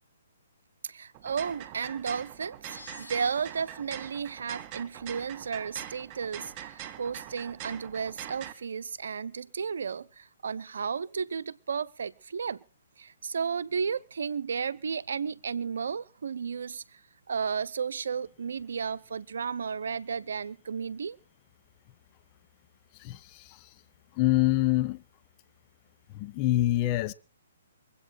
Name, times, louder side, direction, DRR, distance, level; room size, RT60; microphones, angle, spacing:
voice 1, 0.8-12.6 13.0-17.0 17.3-21.2, right 6 dB, 60° right, 0.8 m, -33 dB
sound 1, 1.1-8.5, right 11 dB, 30° right, 2.1 m, -43 dB
sound 2, 2.6-4.0, left 3 dB, 75° left, 2.2 m, -50 dB
voice 2, 22.9-23.7 24.1-25.0 26.1-27.1, left 16 dB, 30° left, 0.7 m, -26 dB
23.5 x 8.6 x 6.3 m
figure-of-eight pair, 125°, 0 cm